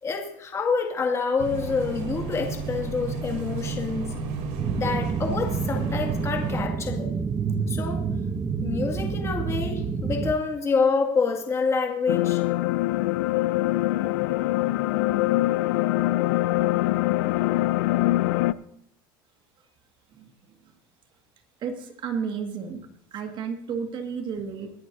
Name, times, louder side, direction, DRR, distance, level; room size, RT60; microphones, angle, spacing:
voice 1, 0.0-4.1 4.7-7.1 7.7-8.0 8.6-12.4, left 5 dB, 25° left, 2 dB, 2.1 m, -27 dB
sound 1, 1.4-6.6, right 5 dB, 65° right, 3.1 m, -32 dB
sound 2, 4.6-10.3, right 5 dB, 20° right, 0.8 m, -28 dB
sound 3, 12.1-18.5, left 17 dB, 75° left, 0.4 m, -23 dB
voice 2, 20.1-20.8 21.6-24.7, right 6 dB, 45° right, 5 dB, 1.8 m, -33 dB
21.5 x 11.0 x 2.7 m, 0.71 s
supercardioid pair, 115°, 12 cm